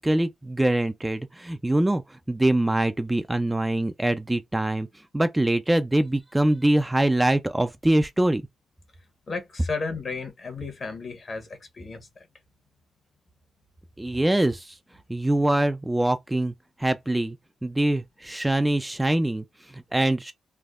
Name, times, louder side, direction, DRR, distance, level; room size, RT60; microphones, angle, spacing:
voice 1, 0.0-4.9 5.1-8.4 14.0-14.8 15.1-16.5 16.8-17.4 17.6-20.3, right 1 dB, 15° right, 0.4 m, -24 dB
voice 2, 9.3-11.5 11.7-12.1, left 4 dB, 50° left, 1.1 m, -33 dB
3.4 x 2.1 x 2.4 m
cardioid pair, 60°, 0 cm